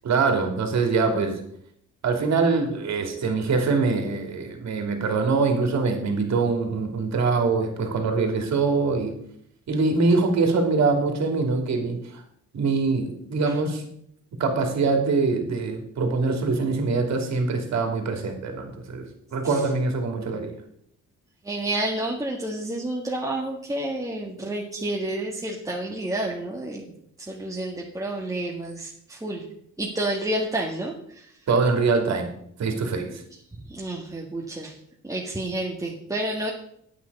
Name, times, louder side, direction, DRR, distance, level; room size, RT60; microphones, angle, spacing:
voice 1, 0.0-1.4 2.0-9.1 9.7-12.0 12.5-13.8 14.4-20.6 31.5-32.3 32.6-33.2, right 4 dB, 65° right, 4 dB, 2.7 m, -23 dB
voice 2, 21.4-26.8 27.2-29.5 29.8-31.3 33.7-34.7 35.0-36.5, right 1 dB, 10° right, -3 dB, 1.8 m, -30 dB
9.3 x 8.4 x 5.4 m, 0.69 s
cardioid pair, 90°, 30 cm